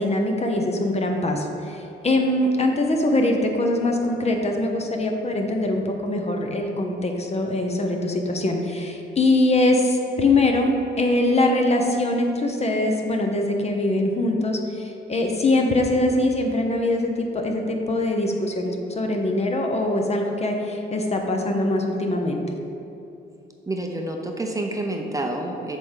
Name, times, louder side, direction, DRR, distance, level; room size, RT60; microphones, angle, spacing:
voice 1, 0.0-22.4, left 2 dB, 30° left, 2 dB, 1.0 m, -22 dB
voice 2, 23.7-25.8, right 1 dB, 15° right, 1 dB, 0.7 m, -28 dB
7.6 x 3.7 x 6.5 m, 2.9 s
cardioid pair, 90°, 20 cm